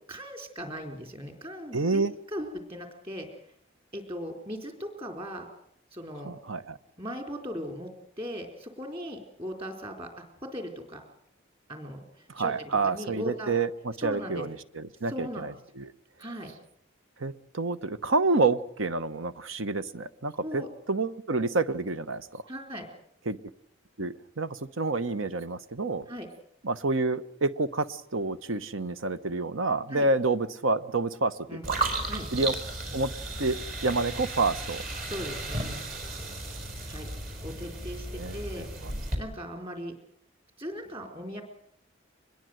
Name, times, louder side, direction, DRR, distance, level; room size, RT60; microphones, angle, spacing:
voice 1, 0.1-2.0 2.3-3.3 3.9-5.5 5.9-6.3 7.0-7.9 8.2-10.1 10.4-11.0 11.7-13.5 14.0-14.4 15.1-15.6 16.2-16.5 20.4-20.7 22.5-22.9 26.1-26.3 29.9-30.1 31.5-31.7 32.0-32.3 35.1-35.6 36.9-37.1 37.4-38.7 39.2-39.9 40.6-41.4, equal, 30° right, 4 dB, 4.2 m, -38 dB
voice 2, 1.7-2.1 6.2-6.8 12.3-15.9 17.2-22.4 23.3-23.4 24.0-26.0 26.6-31.8 32.3-32.5 32.9-33.1 33.4-34.8 38.1-39.2, right 3 dB, 80° right, 13 dB, 1.1 m, -29 dB
sound 1, 31.6-39.2, right 2 dB, 45° right, 5.2 m, -34 dB
23.5 x 21.5 x 7.9 m, 0.70 s
head